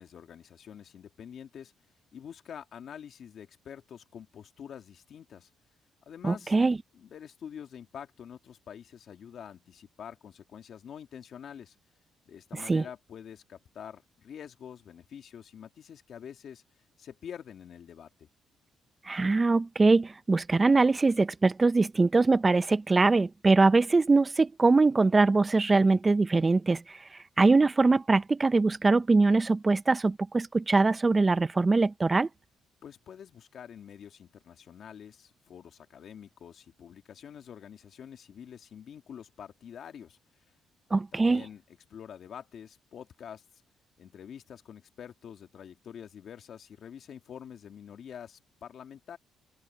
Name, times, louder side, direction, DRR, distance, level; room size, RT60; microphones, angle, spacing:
voice 1, 0.0-1.7 2.1-5.5 6.1-6.5 6.9-11.8 12.3-16.6 17.0-18.3 32.8-40.2 41.1-43.4 44.0-49.2, left 8 dB, 60° left, 2.3 m, -46 dB
voice 2, 6.2-6.8 12.5-12.8 19.1-27.0 27.4-32.3 40.9-41.4, right 3 dB, 25° right, 0.7 m, -23 dB
cardioid pair, 90°, 0 cm